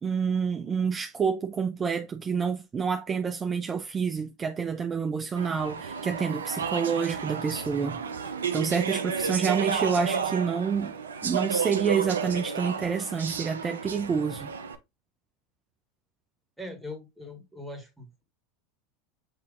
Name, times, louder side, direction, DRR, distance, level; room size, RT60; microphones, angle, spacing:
voice 1, 0.0-8.0 8.5-10.9 11.2-14.5, right 6 dB, 25° right, 0.5 m, -28 dB
Speech / Chatter, 5.4-14.7, right 6 dB, 85° right, 0.5 m, -32 dB
voice 2, 16.6-18.2, left 1 dB, 5° right, 1.6 m, -41 dB
7.7 x 2.8 x 2.4 m
hypercardioid pair, 85°, 0 cm